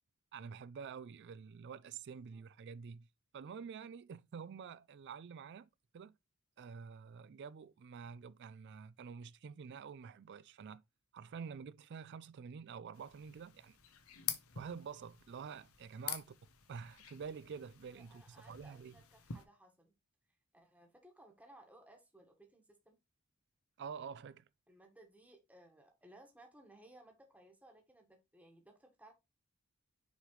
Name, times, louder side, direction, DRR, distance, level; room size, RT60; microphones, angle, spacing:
voice 1, 0.3-3.1 3.3-5.7 5.9-6.1 6.6-10.8 11.1-13.8 14.5-16.2 16.7-19.0 23.8-24.4, right 6 dB, 50° right, 0.3 m, -48 dB
sound 1, 12.9-19.4, left 9 dB, 75° left, 1.0 m, -47 dB
voice 2, 17.9-19.9 20.5-23.0 24.7-29.1, right 1 dB, 5° right, 1.4 m, -61 dB
6.5 x 5.0 x 3.0 m
head